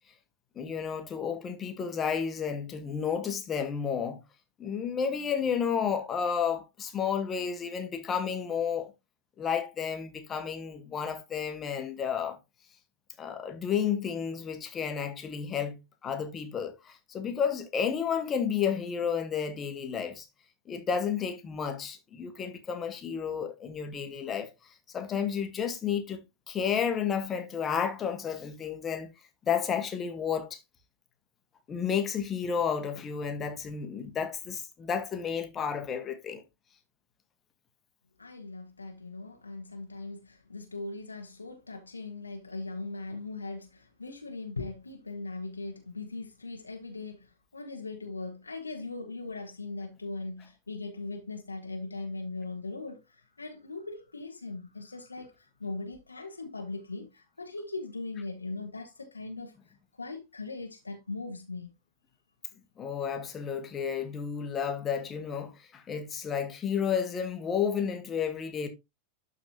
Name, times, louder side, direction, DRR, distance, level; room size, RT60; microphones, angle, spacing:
voice 1, 0.5-4.2 4.6-8.9 9.4-12.4 13.2-20.3 20.7-24.5 24.9-29.1 29.5-30.6 31.7-36.4 62.8-68.7, left 7 dB, 25° left, 1.5 m, -31 dB
voice 2, 38.2-59.5 60.0-61.7, left 3 dB, 80° left, 1.1 m, -39 dB
12.0 x 4.1 x 2.8 m
figure-of-eight pair, 90°, 0 cm